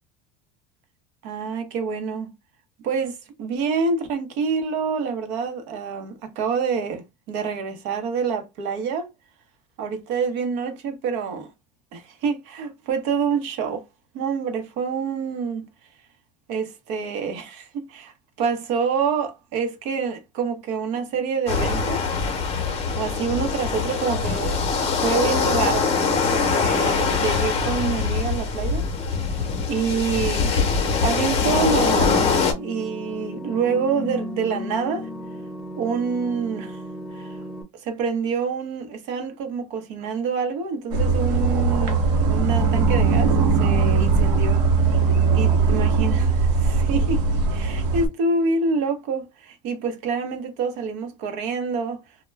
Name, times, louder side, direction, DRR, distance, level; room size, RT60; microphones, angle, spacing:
voice 1, 1.2-2.3 2.8-9.1 9.8-11.5 11.9-13.9 14.1-15.7 16.5-22.1 23.0-26.0 26.3-30.6 31.0-32.2 32.6-35.1 35.8-36.8 37.1-37.4 37.7-45.0 45.3-52.0, right 5 dB, 60° right, 0.8 m, -27 dB
sound 1, 21.5-32.5, left 5 dB, 30° left, 0.8 m, -23 dB
sound 2, 31.4-37.6, left 1 dB, ahead, 0.4 m, -34 dB
sound 3, 40.9-48.1, right 4 dB, 85° right, 0.9 m, -20 dB
2.2 x 2.1 x 3.2 m
supercardioid pair, 135°, 20 cm